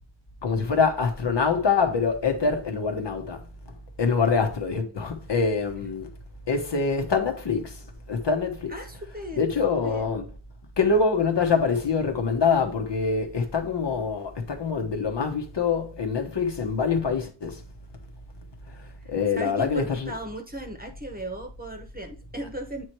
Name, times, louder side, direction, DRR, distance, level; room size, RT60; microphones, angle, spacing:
voice 1, 0.4-3.4 4.0-6.1 6.5-7.8 8.1-8.7 9.4-10.3 10.8-17.6 19.1-20.1, left 5 dB, 60° left, 1.2 m, -25 dB
voice 2, 8.7-10.1 19.0-22.8, right 1 dB, 20° right, 1.0 m, -37 dB
8.4 x 3.1 x 4.5 m
wide cardioid pair, 130°, 48 cm